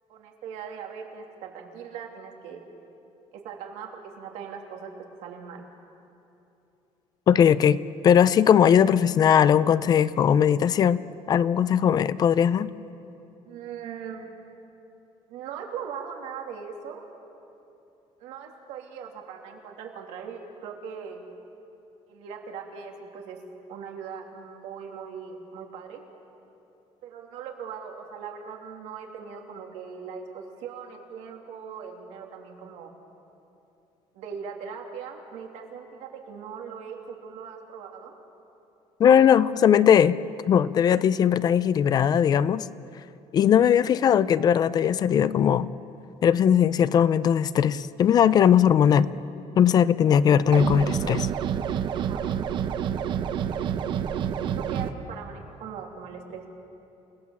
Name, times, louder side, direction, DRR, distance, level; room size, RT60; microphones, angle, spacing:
voice 1, 0.1-2.6 3.3-4.9 5.2-5.6 13.4-14.3 15.3-17.0 18.2-21.2 22.1-23.4 23.7-26.0 27.0-32.9 34.1-38.1 51.9-52.2 54.6-56.5, right 7 dB, 90° right, 1 dB, 3.0 m, -40 dB
voice 2, 7.3-11.0 11.3-12.7 39.0-40.2 40.5-42.7 43.3-45.7 46.2-49.1 49.6-51.3, left 8 dB, 35° left, 16 dB, 0.5 m, -19 dB
sound 1, 50.5-54.9, right 8 dB, 45° right, 0.8 m, -28 dB
29.0 x 18.0 x 7.2 m, 2.8 s
cardioid pair, 170°, 11 cm